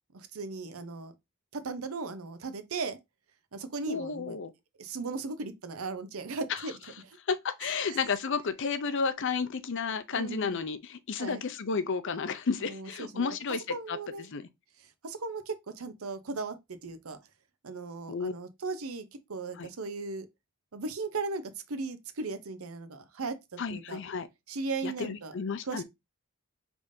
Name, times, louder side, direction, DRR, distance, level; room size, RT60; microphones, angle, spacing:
voice 1, 0.1-1.1 1.5-3.0 3.5-4.4 4.8-6.8 7.0-7.2 7.6-8.0 10.1-10.6 11.2-11.4 12.6-13.4 13.7-14.2 15.0-16.6 16.8-17.2 17.6-20.3 20.7-24.0 24.5-25.3 25.6-25.8, right 3 dB, 85° right, 0.8 m, -37 dB
voice 2, 3.9-4.5 6.5-6.6 7.3-13.6 13.9-14.0 14.3-14.5 18.1-18.3 19.6-19.7 23.6-24.3 24.8-25.8, left 5 dB, 60° left, 0.5 m, -32 dB
5.1 x 3.5 x 2.6 m
head